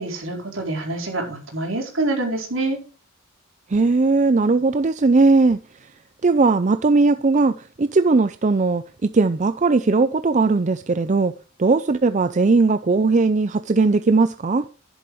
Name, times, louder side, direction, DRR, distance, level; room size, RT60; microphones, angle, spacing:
voice 1, 0.0-2.8, right 2 dB, 70° right, 4.4 m, -26 dB
voice 2, 3.7-5.6 6.2-11.3 11.6-14.6, right 3 dB, 35° right, 0.4 m, -18 dB
11.0 x 11.0 x 3.2 m
head